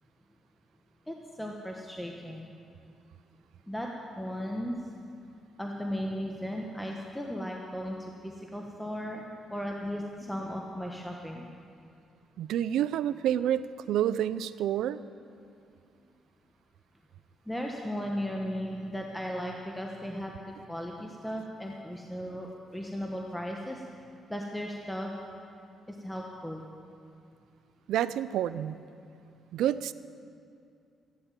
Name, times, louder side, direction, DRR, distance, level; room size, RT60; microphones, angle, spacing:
voice 1, 1.1-2.5 3.7-3.9 4.2-4.8 5.6-11.5 17.5-23.8 24.3-25.1 25.9-26.7, equal, 5° left, 0 dB, 1.2 m, -36 dB
voice 2, 12.4-15.0 27.9-28.8 29.5-29.9, right 11 dB, 85° right, 15 dB, 0.4 m, -28 dB
14.5 x 9.8 x 7.4 m, 2.4 s
cardioid pair, 90°, 0 cm